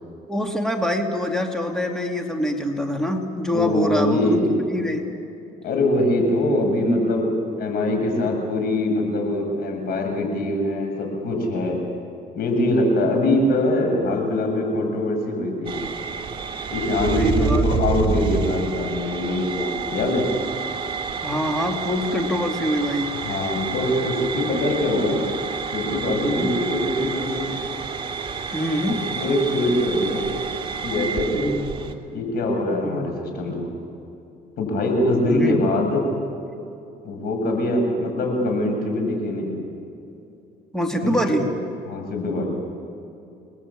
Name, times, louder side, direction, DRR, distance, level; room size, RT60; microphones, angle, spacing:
voice 1, 0.3-4.4 4.7-5.0 17.1-17.6 21.2-23.1 26.1-26.6 28.5-29.0 31.3-31.7 32.8-33.0 35.3-35.6 40.7-41.5, equal, 5° left, 3 dB, 2.7 m, -24 dB
voice 2, 3.5-4.5 5.6-11.8 12.4-15.8 16.7-20.3 23.1-25.2 25.7-27.5 28.8-30.2 30.8-31.5 32.1-33.7 34.6-36.0 37.0-39.6 41.0-41.4 41.9-42.5, left 1 dB, 65° left, 2 dB, 7.6 m, -23 dB
sound 1, 15.7-31.9, right 6 dB, 30° right, 2.7 m, -29 dB
29.5 x 21.0 x 8.7 m, 2.7 s
cardioid pair, 110°, 17 cm